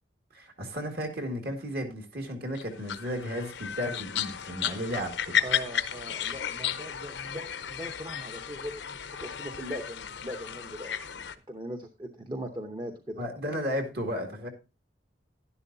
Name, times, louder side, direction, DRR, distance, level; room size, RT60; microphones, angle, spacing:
voice 1, 0.3-5.4 13.2-14.5, equal, 55° right, 2.0 m, -34 dB
sound 1, 2.6-11.4, left 9 dB, 75° left, 0.7 m, -34 dB
voice 2, 5.4-13.3, equal, 25° right, 0.8 m, -40 dB
11.0 x 11.0 x 2.7 m
head